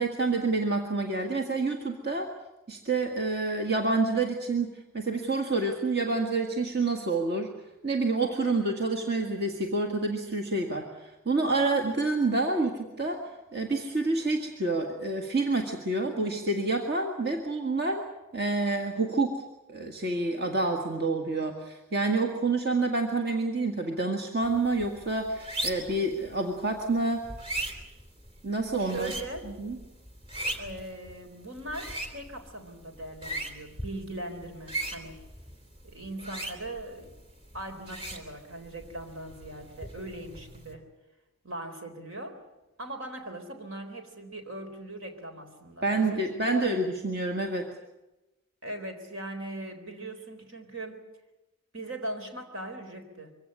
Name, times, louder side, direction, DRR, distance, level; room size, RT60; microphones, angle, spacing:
voice 1, 0.0-2.3 2.7-4.7 4.9-7.5 7.8-13.2 13.5-18.0 18.3-19.4 19.7-27.2 28.4-29.1 29.6-29.8 45.8-47.7, right 3 dB, 50° right, 3 dB, 1.8 m, -28 dB
sound 1, 24.4-40.7, right 1 dB, 25° right, 3.1 m, -40 dB
voice 2, 28.8-29.5 30.6-35.2 35.8-37.1 37.5-40.9 41.4-42.4 42.8-46.7 48.6-51.0 51.7-53.3, right 1 dB, 75° right, 6 dB, 4.0 m, -40 dB
24.0 x 17.0 x 9.8 m, 1.0 s
head